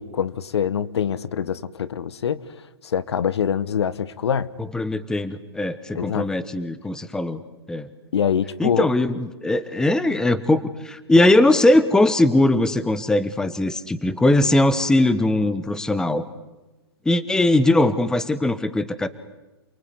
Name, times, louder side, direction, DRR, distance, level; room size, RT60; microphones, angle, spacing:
voice 1, 0.0-2.4 2.8-4.5 5.9-6.3 8.1-8.9, left 8 dB, 80° left, 17 dB, 1.2 m, -24 dB
voice 2, 4.7-7.4 7.7-7.9 8.6-16.2 17.0-19.1, left 1 dB, 5° left, 14 dB, 1.2 m, -20 dB
28.5 x 19.5 x 9.6 m, 1.1 s
hypercardioid pair, 145°, 14 cm